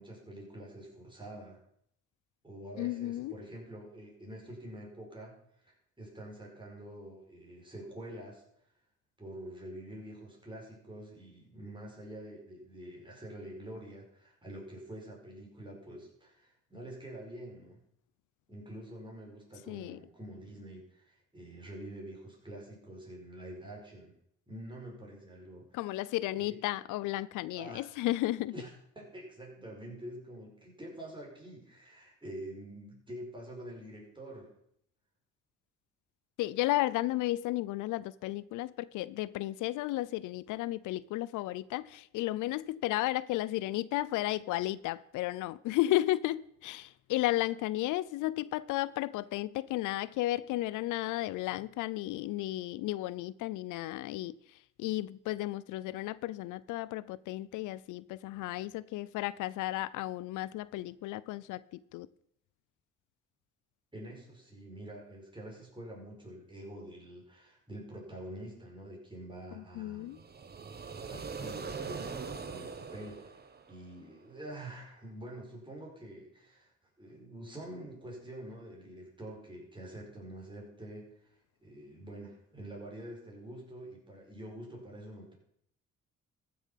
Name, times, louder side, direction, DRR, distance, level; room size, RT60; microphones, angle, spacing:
voice 1, 0.0-1.6 2.4-8.4 9.2-17.8 18.5-24.1 24.5-25.9 26.3-26.6 27.6-27.9 28.5-28.7 29.0-34.5 63.9-70.3 70.9-76.7 77.0-81.4 81.6-85.3, right 1 dB, 15° right, 5.1 m, -46 dB
voice 2, 2.8-3.4 19.7-20.0 25.7-28.5 36.4-54.4 54.8-62.1 69.5-70.2, left 16 dB, 90° left, 0.5 m, -33 dB
sound 1, 70.1-74.1, right 5 dB, 30° right, 1.1 m, -42 dB
14.0 x 7.1 x 5.7 m
cardioid pair, 90°, 30 cm